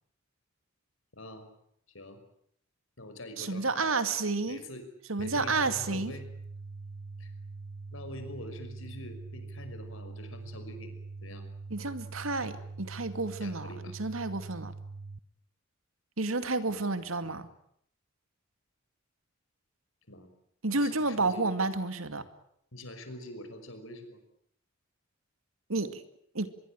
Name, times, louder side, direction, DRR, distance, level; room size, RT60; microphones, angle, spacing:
voice 1, 1.1-1.5 1.9-2.2 3.0-4.0 4.5-4.9 5.2-6.3 7.2-7.3 7.9-11.5 12.4-12.5 13.4-14.0 16.7-17.4 20.1-20.3 20.8-21.5 22.7-24.2, left 1 dB, 75° left, 8 dB, 5.7 m, -45 dB
voice 2, 3.4-4.6 5.1-6.1 11.7-12.5 12.8-13.7 14.0-14.7 16.2-17.5 20.6-22.2 25.7-26.0 26.3-26.5, right 3 dB, 85° right, 11 dB, 2.3 m, -30 dB
sound 1, 5.2-15.2, right 3 dB, 60° right, 1.0 m, -43 dB
24.5 x 22.5 x 8.9 m, 0.70 s
head